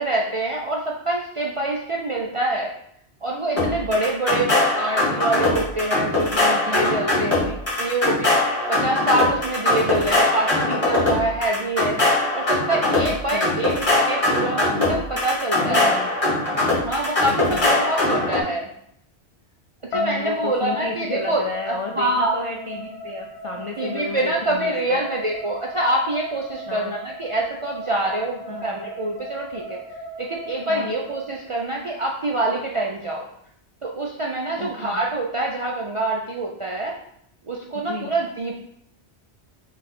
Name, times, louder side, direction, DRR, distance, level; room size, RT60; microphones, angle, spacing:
voice 1, 0.0-2.7 3.2-8.3 8.7-12.0 12.3-15.9 16.8-18.7 19.9-21.4 21.7-22.3 23.8-29.8 30.2-33.2 33.8-36.9 37.5-38.6, right 2 dB, 50° right, -1 dB, 0.3 m, -25 dB
sound 1, 3.6-18.4, left 2 dB, 30° left, 1.6 m, -21 dB
voice 2, 7.1-7.5 13.1-13.5 15.5-16.1 17.2-17.7 19.9-25.0 26.7-26.9 28.5-28.7 30.7-31.0 34.6-35.0 37.7-38.1, left 4 dB, 55° left, 0 dB, 0.3 m, -33 dB
sound 2, 19.9-32.1, equal, 80° left, 1.0 m, -36 dB
5.1 x 2.4 x 4.2 m, 0.72 s
omnidirectional pair, 1.1 m